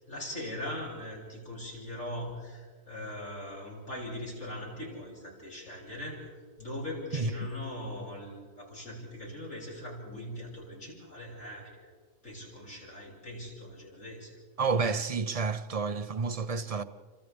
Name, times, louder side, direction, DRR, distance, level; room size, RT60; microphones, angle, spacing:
voice 1, 0.1-11.9 12.2-14.4, left 1 dB, 85° left, 7.9 m, -40 dB
voice 2, 14.6-16.8, right 4 dB, 35° right, 0.7 m, -30 dB
29.5 x 26.0 x 3.5 m
omnidirectional pair, 1.3 m